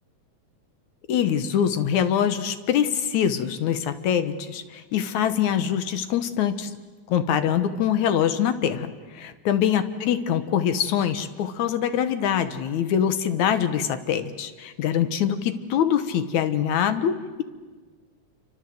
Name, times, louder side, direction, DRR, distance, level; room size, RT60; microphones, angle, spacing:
voice 1, 1.1-6.7 7.1-17.4, left 9 dB, 80° left, 11 dB, 2.5 m, -24 dB
27.5 x 24.5 x 7.8 m, 1.4 s
omnidirectional pair, 3.3 m